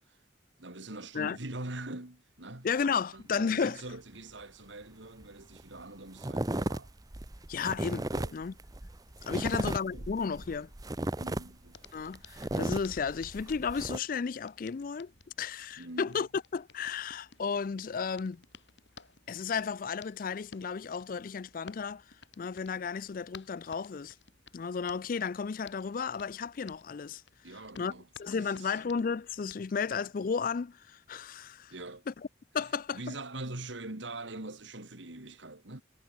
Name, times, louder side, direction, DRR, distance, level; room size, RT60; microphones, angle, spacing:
voice 1, 0.6-2.7 3.1-6.9 8.1-8.4 9.4-10.1 11.2-11.8 15.8-16.2 27.4-28.1 28.3-28.8 31.7-32.0 32.9-35.8, right 2 dB, 80° right, 2.9 m, -43 dB
voice 2, 2.6-3.8 7.5-8.5 9.3-10.7 11.9-15.1 15.4-18.4 19.3-22.0 22.4-24.2 24.5-27.2 27.8-27.9 28.2-31.7 32.1-32.2 32.5-33.0, left 5 dB, 50° left, 0.4 m, -33 dB
sound 1, 5.2-5.3 5.5-5.8 6.2-14.0, right 1 dB, 20° right, 0.8 m, -35 dB
Hands, 11.7-30.0, left 5 dB, 70° left, 6.6 m, -57 dB
head